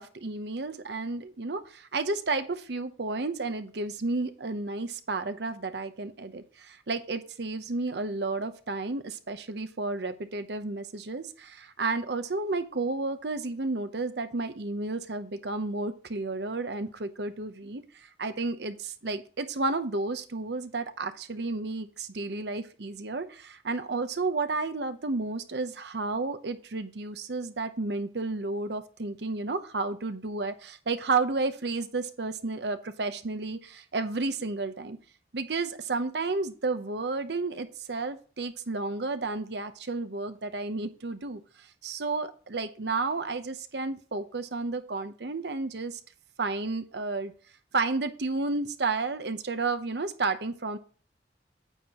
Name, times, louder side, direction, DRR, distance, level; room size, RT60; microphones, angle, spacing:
voice 1, 0.0-17.8 18.2-35.0 35.3-46.0 46.4-47.3 47.7-50.8, right 3 dB, 75° right, 10 dB, 0.8 m, -32 dB
9.1 x 7.5 x 3.0 m, 0.41 s
head